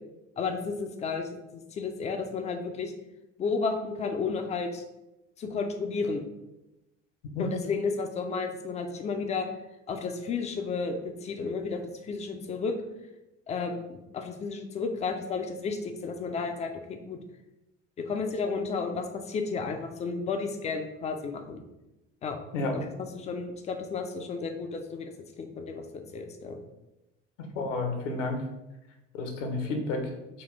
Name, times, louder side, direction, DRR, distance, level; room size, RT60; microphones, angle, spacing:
voice 1, 0.4-1.2 1.5-2.9 3.4-4.8 5.4-6.2 7.4-9.5 9.9-12.7 13.5-17.2 18.1-21.6 22.2-22.4 22.7-22.9 23.1-25.1 25.4-26.6, left 4 dB, 20° left, 5 dB, 0.3 m, -32 dB
voice 2, 27.5-28.4 29.1-30.1, left 3 dB, 70° left, 3 dB, 0.8 m, -30 dB
4.1 x 2.3 x 3.2 m, 0.95 s
figure-of-eight pair, 60°, 38 cm